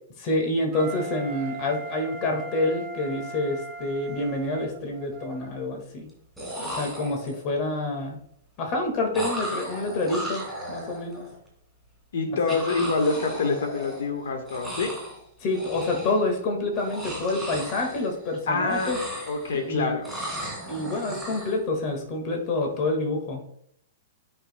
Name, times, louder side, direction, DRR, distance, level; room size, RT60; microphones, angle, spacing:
voice 1, 0.2-6.1 6.6-8.2 8.6-10.4 10.7-11.3 15.4-19.0 19.6-19.9 20.7-23.4, left 2 dB, 35° left, 2 dB, 1.8 m, -27 dB
Wind instrument woodwind instrument, 0.7-5.5, right 5 dB, 15° right, 1.6 m, -39 dB
sound 1, 3.9-4.1 4.5-5.1 6.1-6.2 6.4-7.6 9.1-11.3 12.5-14.2 14.5-15.2 15.5-16.3 16.7-18.4 18.6-19.7 20.0-21.6, equal, ahead, 2.8 m, -36 dB
voice 2, 12.1-14.9 18.5-18.9 19.3-20.1, left 3 dB, 80° left, 5 dB, 1.4 m, -26 dB
13.0 x 5.4 x 2.2 m, 0.71 s
hypercardioid pair, 150°, 0 cm